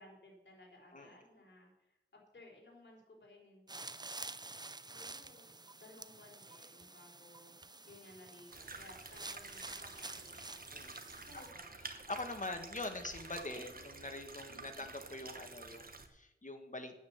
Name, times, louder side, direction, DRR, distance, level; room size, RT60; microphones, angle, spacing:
voice 1, 0.0-4.5 4.8-7.5 7.9-10.4 11.2-11.7 14.5-14.9, left 1 dB, 60° left, -1 dB, 3.9 m, -59 dB
sound 1, 3.7-11.5, right 3 dB, 20° right, 0.5 m, -49 dB
sound 2, 8.5-16.1, right 3 dB, 45° right, 1.2 m, -50 dB
voice 2, 10.7-11.1 11.8-17.0, left 2 dB, 40° left, 6 dB, 1.6 m, -44 dB
9.3 x 8.5 x 7.1 m, 0.91 s
wide cardioid pair, 75°, 20 cm